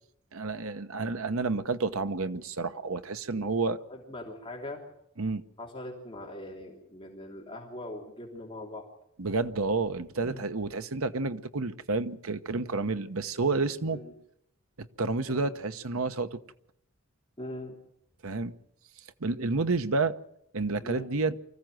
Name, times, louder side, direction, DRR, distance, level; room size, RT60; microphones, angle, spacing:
voice 1, 0.3-3.8 5.2-5.4 9.2-14.0 15.0-16.4 18.2-18.5 19.2-20.1 20.5-21.4, right 3 dB, 85° right, 1.1 m, -30 dB
voice 2, 3.9-4.8 5.6-8.9 10.2-10.5 13.9-14.1 15.3-15.5 17.4-17.8 20.8-21.1, left 1 dB, 25° left, 3.1 m, -41 dB
24.5 x 15.0 x 7.8 m
head